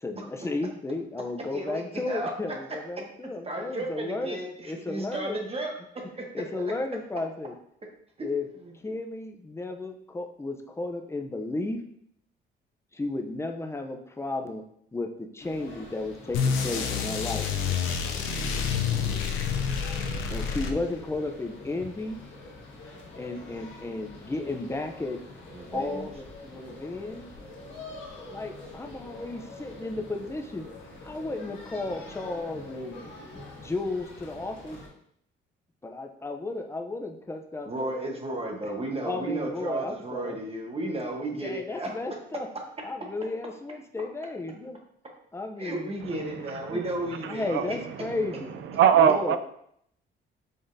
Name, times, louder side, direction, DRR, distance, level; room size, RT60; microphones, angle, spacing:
voice 1, 0.0-4.4 4.6-5.4 6.3-7.5 8.2-8.5 8.8-11.8 12.9-14.6 14.9-17.5 20.3-22.2 23.2-25.2 25.7-27.3 28.3-30.7 31.0-33.0 33.6-34.8 35.8-38.2 39.1-40.4 41.4-42.5 42.8-44.8 45.3-45.9 46.7-46.8 47.3-48.5 49.0-49.4, left 2 dB, 15° left, 4 dB, 0.6 m, -33 dB
voice 2, 1.5-2.3 3.4-6.7 8.6-8.7 19.0-19.4 25.5-26.1 37.6-41.9 45.6-47.8, right 2 dB, 30° right, 1 dB, 1.1 m, -34 dB
sound 1, 15.4-34.9, left 2 dB, 70° left, 1.4 m, -45 dB
sound 2, 16.3-21.2, left 6 dB, 90° left, 0.6 m, -28 dB
voice 3, 47.2-48.3 48.6-49.4, right 8 dB, 75° right, 10 dB, 0.4 m, -23 dB
5.2 x 3.7 x 2.7 m, 0.71 s
cardioid pair, 90°, 20 cm